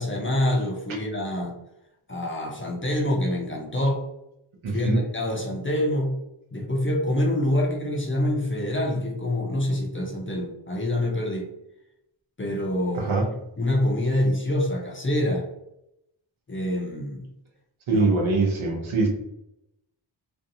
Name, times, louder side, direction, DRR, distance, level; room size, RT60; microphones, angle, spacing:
voice 1, 0.0-1.5 2.1-4.0 4.7-6.1 6.5-11.5 12.4-13.1 13.6-15.4 16.5-17.3 17.9-18.0, left 1 dB, 25° left, 0 dB, 0.5 m, -26 dB
voice 2, 4.6-5.0 13.0-13.3 17.9-19.1, right 3 dB, 85° right, 2 dB, 0.7 m, -23 dB
2.6 x 2.4 x 2.6 m, 0.83 s
wide cardioid pair, 120°, 46 cm